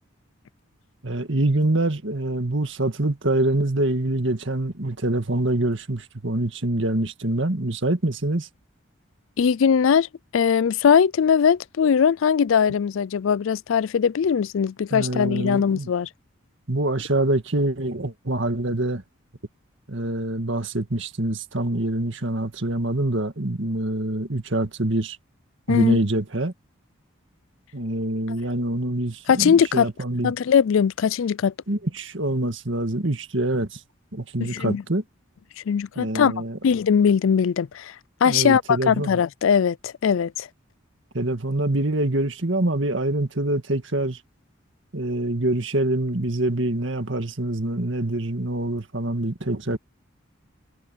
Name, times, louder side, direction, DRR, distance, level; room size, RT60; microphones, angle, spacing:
voice 1, 1.0-8.5 14.9-15.9 16.7-19.0 19.9-25.2 25.7-26.5 27.7-30.3 31.7-33.8 34.1-35.0 36.0-36.6 38.2-39.2 41.1-44.2 44.9-49.8, right 1 dB, 60° right, 2.0 m, -25 dB
voice 2, 9.4-10.1 10.3-16.1 25.7-26.0 29.3-29.9 30.2-31.5 34.4-34.8 35.6-36.3 36.6-37.9 38.2-40.5, left 7 dB, 65° left, 0.4 m, -20 dB
head